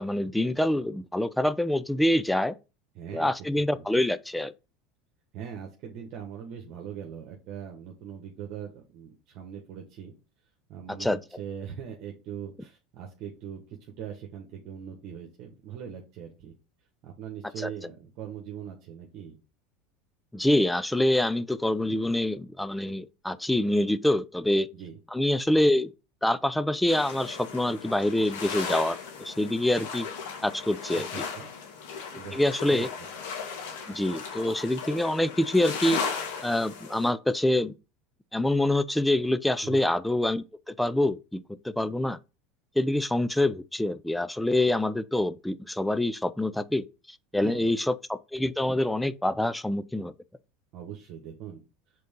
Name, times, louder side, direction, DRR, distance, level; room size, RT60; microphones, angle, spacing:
voice 1, 0.0-2.5 3.1-4.5 11.0-11.2 17.6-17.7 20.3-24.7 25.1-25.9 26.2-30.1 30.4-31.3 32.3-32.9 33.9-36.0 36.4-37.7 38.3-41.4 41.6-42.2 42.8-46.8 47.3-50.1, left 1 dB, 5° left, 0.5 m, -26 dB
voice 2, 2.9-3.8 5.3-10.1 10.7-16.5 17.0-19.4 24.7-25.0 30.9-31.5 32.1-32.4 32.7-32.9 39.6-39.9 47.3-47.7 50.7-51.6, right 8 dB, 55° right, 1.4 m, -41 dB
sound 1, 26.9-37.1, left 6 dB, 80° left, 1.8 m, -36 dB
5.2 x 3.9 x 5.3 m
supercardioid pair, 100°, 0 cm